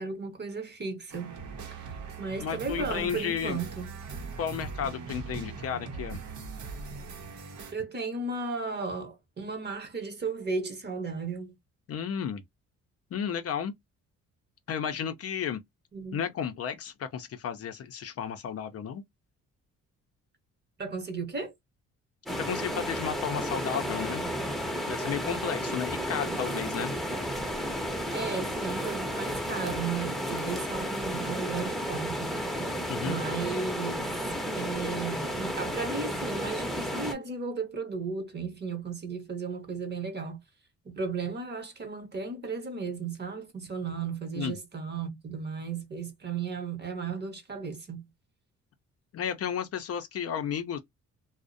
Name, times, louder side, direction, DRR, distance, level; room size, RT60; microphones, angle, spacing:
voice 1, 0.0-1.3 1.8-1.9 2.2-3.9 7.7-11.5 15.9-16.2 20.8-21.5 25.5-26.2 28.1-32.3 33.0-34.2 34.5-40.4 40.8-48.1, right 4 dB, 35° right, 0.9 m, -35 dB
sound 1, 1.1-7.7, right 4 dB, 70° right, 0.7 m, -40 dB
voice 2, 2.4-3.6 4.4-6.2 11.9-12.4 13.1-13.7 14.7-15.6 16.1-19.0 22.5-24.2 24.9-26.9 32.9-33.2 44.4-44.5 49.1-50.8, left 8 dB, 50° left, 0.5 m, -33 dB
sound 2, 22.3-37.1, equal, ahead, 0.7 m, -32 dB
2.4 x 2.0 x 2.5 m
cardioid pair, 90°, 30 cm